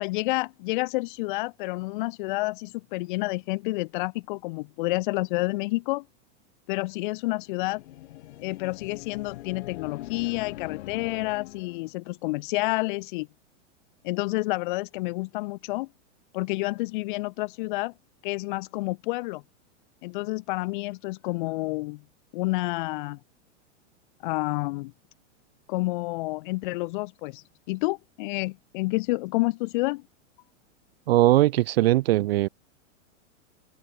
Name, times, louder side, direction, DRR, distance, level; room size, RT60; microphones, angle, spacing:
voice 1, 0.0-6.0 6.7-7.8 8.4-13.3 14.0-15.9 16.3-17.9 18.2-19.4 20.0-22.0 22.3-23.2 24.2-24.9 25.7-30.0, left 23 dB, 40° left, 1.3 m, -29 dB
sound 1, 7.3-11.9, left 16 dB, 55° left, 2.8 m, -42 dB
voice 2, 31.1-32.5, right 16 dB, 50° right, 0.4 m, -20 dB
supercardioid pair, 165°, 39 cm